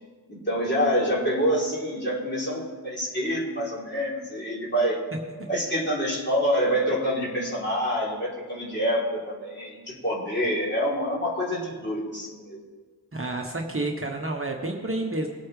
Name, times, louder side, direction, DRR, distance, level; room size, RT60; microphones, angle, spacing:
voice 1, 0.3-5.0 5.5-12.6, equal, 25° left, -6 dB, 3.4 m, -26 dB
voice 2, 13.1-15.3, right 2 dB, 35° right, 1 dB, 1.1 m, -29 dB
20.0 x 8.5 x 3.2 m, 1.5 s
wide cardioid pair, 100°, 39 cm